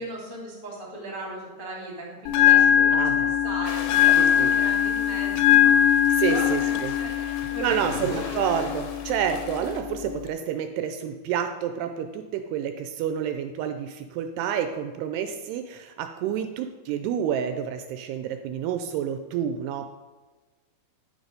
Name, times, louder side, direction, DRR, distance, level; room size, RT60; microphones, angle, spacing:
voice 1, 0.0-8.7, right 2 dB, 15° right, -4 dB, 2.0 m, -38 dB
Bell, 2.3-10.3, left 10 dB, 90° left, 3.0 m, -22 dB
voice 2, 2.9-3.3 4.2-4.5 6.2-6.9 7.6-19.9, right 8 dB, 80° right, 7 dB, 2.6 m, -29 dB
sound 1, 3.6-9.8, left 5 dB, 70° left, 2.4 m, -40 dB
11.5 x 6.2 x 5.1 m, 1.3 s
omnidirectional pair, 4.9 m